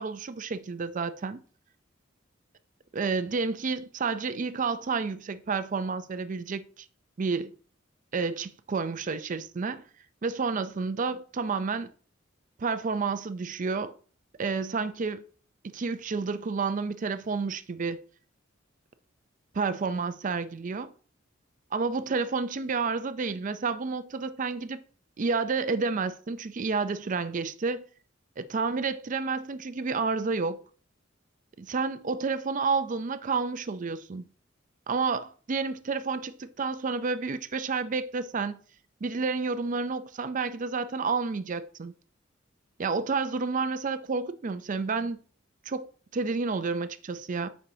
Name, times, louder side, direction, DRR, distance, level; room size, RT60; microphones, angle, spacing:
voice 1, 0.0-1.4 2.9-6.9 7.2-7.5 8.1-9.8 10.2-11.9 12.6-13.9 14.4-15.2 15.7-18.0 19.5-20.9 21.7-24.8 25.2-27.8 28.4-30.6 31.6-34.3 34.9-38.6 39.0-41.9 42.8-45.2 45.7-47.5, right 4 dB, 40° right, 0.4 m, -30 dB
8.4 x 5.4 x 2.7 m
head